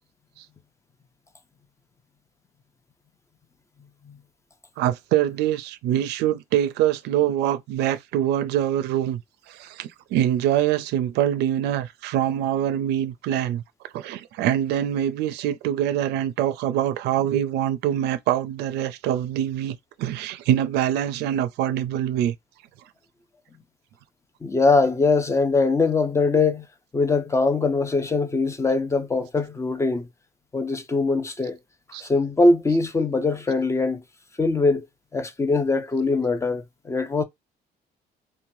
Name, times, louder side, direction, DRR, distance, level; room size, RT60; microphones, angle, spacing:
voice 1, 4.8-9.2 9.5-13.6 13.9-22.3 31.9-32.1 32.7-32.8, right 11 dB, 80° right, 0.4 m, -24 dB
voice 2, 24.4-26.7 26.9-30.1 30.5-31.6 32.0-34.0 34.4-34.8 35.1-37.2, left 3 dB, 15° left, 0.4 m, -22 dB
3.0 x 2.1 x 2.7 m
cardioid pair, 110°, 17 cm